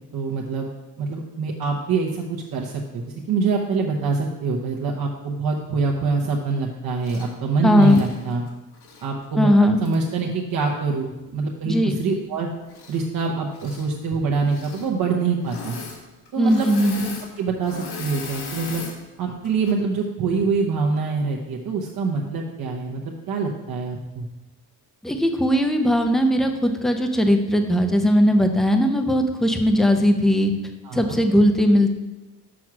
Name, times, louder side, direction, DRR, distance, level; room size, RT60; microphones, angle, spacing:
voice 1, 0.1-0.7 1.0-8.4 9.0-12.5 12.9-15.8 16.3-16.6 16.9-17.1 17.4-18.8 19.2-24.3 30.8-31.2, right 4 dB, 65° right, -1 dB, 1.0 m, -25 dB
Engine / Mechanisms, 7.0-7.3 7.7-9.1 9.8-10.0 12.6-13.2 13.5-13.9 14.4-14.9 15.4-16.0 16.2-19.0 19.4-19.7, left 4 dB, 90° left, 1.6 m, -37 dB
voice 2, 7.6-8.0 9.4-9.8 11.7-12.0 16.4-17.1 25.0-30.5 30.9-31.9, equal, ahead, 5 dB, 0.5 m, -18 dB
6.2 x 6.1 x 6.0 m, 1.1 s
wide cardioid pair, 165°, 38 cm